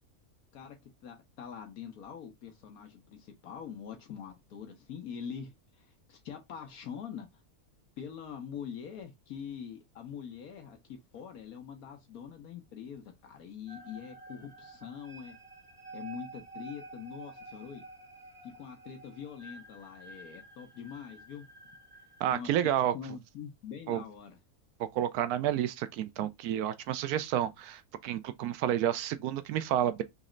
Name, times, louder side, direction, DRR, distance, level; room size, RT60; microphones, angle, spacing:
voice 1, 1.0-7.3 8.0-15.4 15.9-17.8 18.4-21.4 22.3-22.5 22.9-24.4, left 7 dB, 75° left, 1.4 m, -44 dB
sound 1, 13.7-22.3, right 3 dB, 30° right, 0.9 m, -50 dB
voice 2, 22.2-22.9 23.9-24.0 24.8-30.0, right 11 dB, 85° right, 1.1 m, -30 dB
4.1 x 3.2 x 3.7 m
omnidirectional pair, 1.6 m